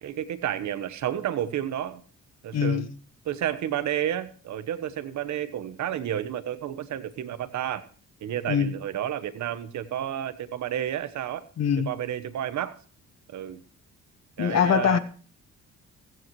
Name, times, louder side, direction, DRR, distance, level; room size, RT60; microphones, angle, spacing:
voice 1, 0.0-2.0 2.4-2.9 3.2-7.8 8.2-11.4 11.9-12.8 13.3-13.6 14.4-15.0, right 10 dB, 70° right, 1.2 m, -31 dB
voice 2, 2.5-2.9 8.5-8.7 11.6-11.9 14.4-15.0, left 8 dB, 60° left, 1.3 m, -23 dB
15.5 x 15.0 x 3.1 m
cardioid pair, 90°, 30 cm